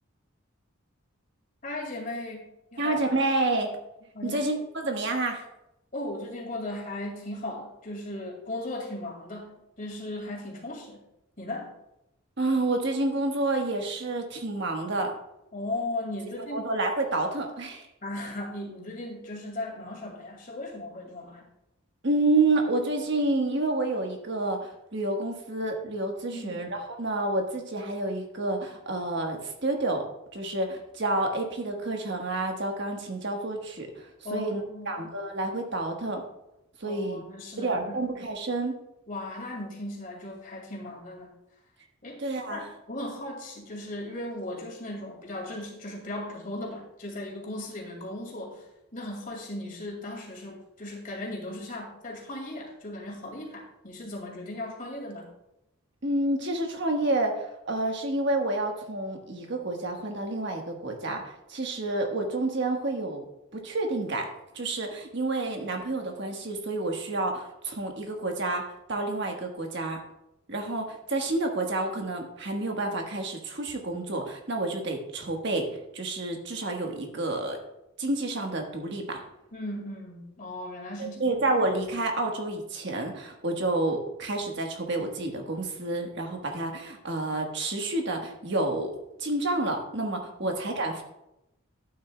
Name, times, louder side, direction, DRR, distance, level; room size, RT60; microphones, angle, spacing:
voice 1, 1.6-2.5 2.7-3.0 4.1-4.5 5.9-11.0 11.4-11.7 15.5-16.7 18.0-21.4 26.3-26.7 34.2-35.0 36.8-38.0 39.1-41.3 42.0-42.2 42.5-55.3 79.5-81.4 90.4-90.5, left 1 dB, 40° left, 0 dB, 2.2 m, -37 dB
voice 2, 2.8-3.7 4.2-4.6 4.8-5.4 12.4-15.1 16.4-17.9 22.0-30.0 30.3-34.6 34.9-36.2 36.8-37.2 37.6-38.8 42.2-42.6 56.0-61.2 61.5-63.2 63.5-64.3 64.5-68.6 68.9-70.0 70.5-75.7 75.9-77.6 78.0-79.2 81.0-88.9 89.2-91.0, right 2 dB, 55° right, 2 dB, 1.4 m, -29 dB
11.5 x 9.0 x 2.3 m, 0.87 s
head